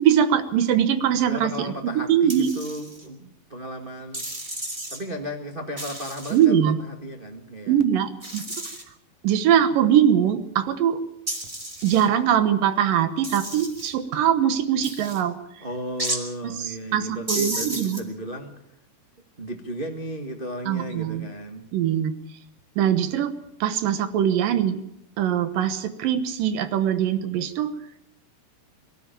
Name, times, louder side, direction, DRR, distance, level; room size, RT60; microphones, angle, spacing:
voice 1, 0.0-2.5 6.3-6.8 7.7-8.4 9.2-11.0 11.8-15.4 16.4-18.0 20.7-21.3 21.7-22.1 22.8-23.3 23.6-24.8 25.2-27.7, right 9 dB, 70° right, 11 dB, 2.8 m, -22 dB
voice 2, 1.3-4.3 4.9-7.8 15.6-18.5 19.4-21.7, equal, 40° right, 2 dB, 0.7 m, -34 dB
sound 1, 2.3-3.1 4.1-5.0 5.8-6.5 8.2-8.8 11.3-12.1 13.2-13.9 14.8-15.2 16.0-16.2 17.3-18.0, right 1 dB, 10° right, 2.1 m, -32 dB
23.0 x 13.0 x 9.0 m, 0.78 s
omnidirectional pair, 4.3 m